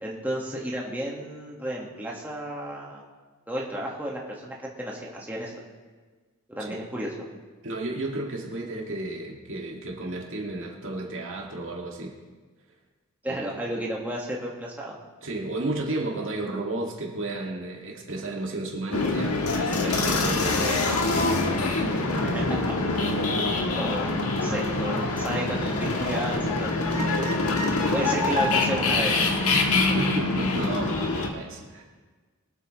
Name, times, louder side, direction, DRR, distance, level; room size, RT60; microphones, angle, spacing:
voice 1, 0.0-3.0 3.5-5.5 6.5-7.1 13.2-14.9 22.2-22.4 23.7-26.7 27.0-27.3 27.9-29.1, right 1 dB, 10° right, -3 dB, 1.6 m, -32 dB
voice 2, 7.6-12.2 13.3-13.6 15.2-21.0 21.5-21.9 22.9-23.3 29.5-31.9, right 2 dB, 60° right, 0 dB, 2.1 m, -33 dB
sound 1, 18.9-31.3, left 3 dB, 75° left, 1.4 m, -25 dB
23.0 x 8.3 x 3.1 m, 1.4 s
head